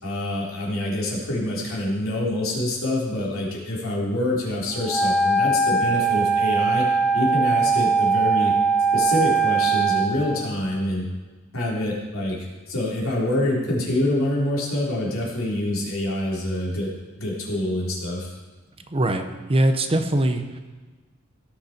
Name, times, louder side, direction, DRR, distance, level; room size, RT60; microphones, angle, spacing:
voice 1, 0.0-6.8 7.1-8.5 8.9-11.1 11.5-16.9 17.2-18.3, left 1 dB, 90° left, -5 dB, 3.5 m, -26 dB
Wind instrument woodwind instrument, 4.8-10.1, right 4 dB, ahead, 0.7 m, -20 dB
voice 2, 18.9-20.6, right 1 dB, 25° right, 7 dB, 0.8 m, -22 dB
17.0 x 6.7 x 4.3 m, 1.3 s
head